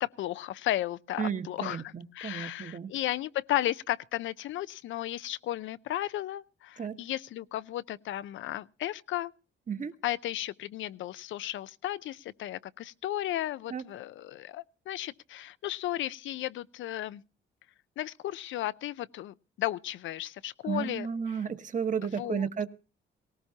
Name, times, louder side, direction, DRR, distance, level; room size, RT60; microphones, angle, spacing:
voice 1, 0.0-9.3 10.0-17.2 18.0-21.4 22.1-22.5, left 14 dB, 75° left, 0.6 m, -34 dB
voice 2, 1.2-2.9 6.8-7.0 9.7-9.9 13.7-13.8 20.6-22.7, right 7 dB, 40° right, 1.3 m, -33 dB
18.5 x 18.0 x 2.8 m
cardioid pair, 90°, 20 cm